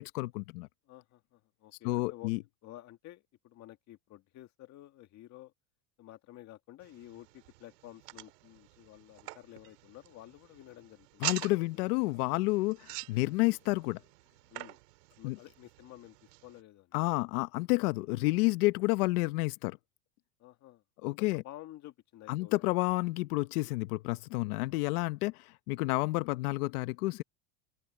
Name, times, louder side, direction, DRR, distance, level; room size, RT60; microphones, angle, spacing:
voice 1, 0.0-0.7 1.8-2.4 11.2-14.0 15.2-15.4 16.9-19.8 21.0-21.4 22.3-27.2, left 22 dB, 70° left, 1.0 m, -30 dB
voice 2, 0.9-2.3 2.6-5.5 6.0-11.3 11.6-12.3 14.5-14.8 15.2-16.2 16.4-16.9 18.0-18.1 20.4-20.8 21.3-22.7 24.4-24.6, left 15 dB, 35° left, 1.9 m, -52 dB
sound 1, 6.8-16.6, right 21 dB, 85° right, 3.7 m, -45 dB
open air
supercardioid pair, 155°, 46 cm